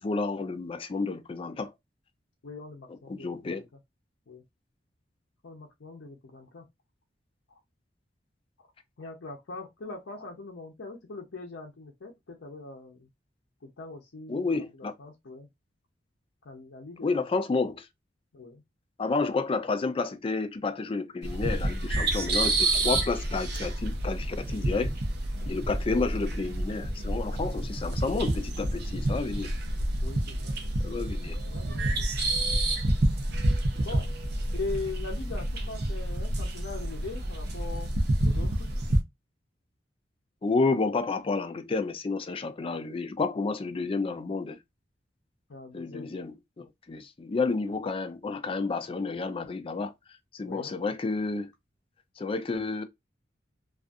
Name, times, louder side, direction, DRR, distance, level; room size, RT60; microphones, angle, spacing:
voice 1, 0.0-1.7 3.1-3.6 14.3-14.9 17.0-17.9 19.0-24.9 25.5-29.5 30.8-31.4 40.4-44.6 45.7-49.9 50.3-51.5 52.2-52.8, left 3 dB, 30° left, 0.4 m, -30 dB
voice 2, 2.4-3.6 4.3-4.4 5.4-6.7 9.0-13.1 13.6-14.7 15.0-15.5 16.4-17.2 18.3-18.6 25.4-25.6 30.0-30.6 30.9-31.0 31.5-32.3 33.8-34.1 34.5-37.9 38.2-38.7 45.5-46.1 50.4-50.7, left 3 dB, 80° left, 0.6 m, -41 dB
sound 1, 21.2-39.0, right 1 dB, 60° right, 0.6 m, -29 dB
2.4 x 2.3 x 2.4 m
head